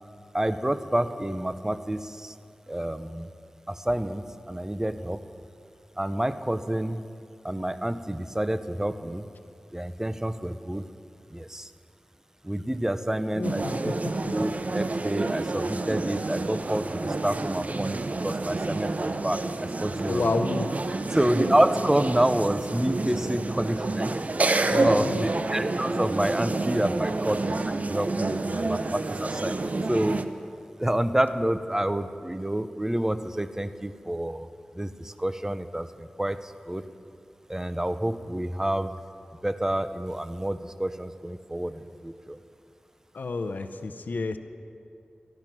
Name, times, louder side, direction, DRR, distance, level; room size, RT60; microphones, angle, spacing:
voice 1, 0.3-2.3 2.7-3.3 3.7-5.2 6.0-7.1 7.4-9.3 9.7-10.9 11.3-11.7 12.4-13.9 14.3-20.2 21.1-24.1 24.8-30.2 30.8-34.5 34.7-36.9 37.5-39.0 39.4-42.4, right 1 dB, 15° right, 11 dB, 0.7 m, -28 dB
voice 2, 13.4-14.0 14.2-14.3 20.1-20.8 24.5-25.2 43.1-44.4, left 3 dB, 85° left, 9 dB, 0.6 m, -30 dB
sound 1, 13.4-30.3, right 3 dB, 55° right, 0.7 m, -29 dB
14.5 x 12.0 x 6.0 m, 2.6 s
cardioid pair, 45°, 3 cm